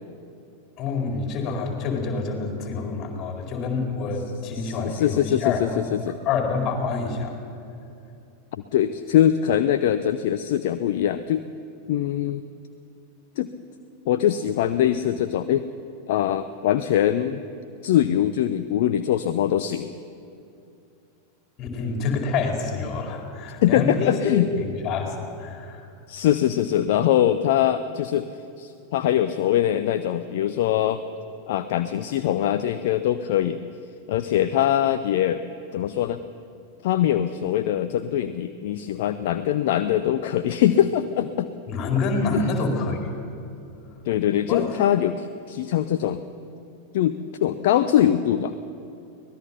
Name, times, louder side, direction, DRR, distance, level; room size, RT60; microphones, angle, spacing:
voice 1, 0.8-5.8 6.2-7.3 21.6-24.1 24.6-25.8 41.7-43.1 44.5-44.6, left 4 dB, 30° left, 2 dB, 4.5 m, -27 dB
voice 2, 4.5-6.2 8.7-11.4 11.9-12.4 13.4-13.5 14.1-15.7 16.1-17.4 17.8-19.9 23.6-24.5 26.1-28.3 28.6-31.0 31.5-33.6 34.1-35.4 35.7-36.2 36.8-41.5 42.3-42.4 44.1-46.2 46.9-48.5, left 11 dB, 50° left, 11 dB, 0.6 m, -22 dB
24.0 x 19.0 x 5.8 m, 2.6 s
figure-of-eight pair, 90°, 0 cm